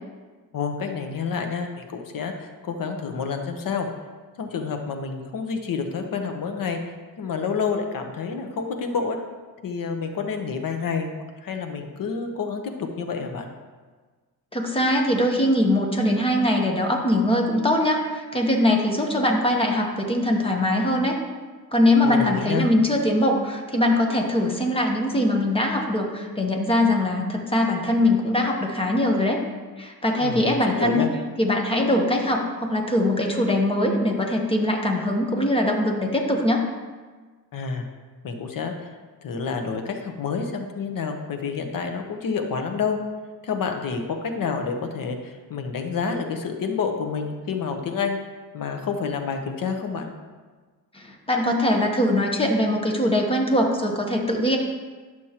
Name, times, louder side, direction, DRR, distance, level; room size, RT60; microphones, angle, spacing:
voice 1, 0.5-3.9 4.4-6.8 7.2-9.2 9.6-11.1 11.4-13.5 22.0-22.7 30.2-31.1 37.5-37.9 38.2-38.9 39.2-43.0 43.4-48.2 48.5-50.1, left 5 dB, 65° left, 5 dB, 0.9 m, -28 dB
voice 2, 14.5-21.2 21.7-29.4 29.8-31.1 31.4-36.6 50.9-54.6, left 1 dB, 15° left, 1 dB, 0.9 m, -22 dB
11.0 x 6.2 x 2.9 m, 1.4 s
wide cardioid pair, 155°, 37 cm